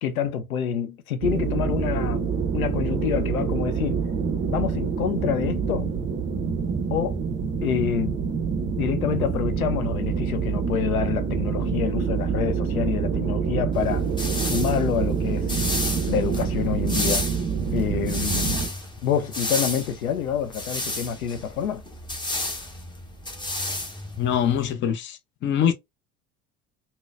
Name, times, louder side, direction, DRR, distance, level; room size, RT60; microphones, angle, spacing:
voice 1, 0.0-2.2 2.5-4.0 4.5-5.9 6.9-7.2 7.6-8.2 8.8-14.1 14.4-15.5 16.1-17.3 17.7-18.6 19.0-21.8, left 8 dB, 75° left, 0.6 m, -27 dB
sound 1, 1.2-18.7, right 6 dB, 25° right, 0.6 m, -26 dB
sound 2, 13.8-24.7, left 2 dB, 10° left, 0.9 m, -32 dB
voice 2, 24.2-25.7, left 9 dB, 25° left, 0.5 m, -24 dB
3.8 x 2.1 x 2.2 m
figure-of-eight pair, 70°, 43 cm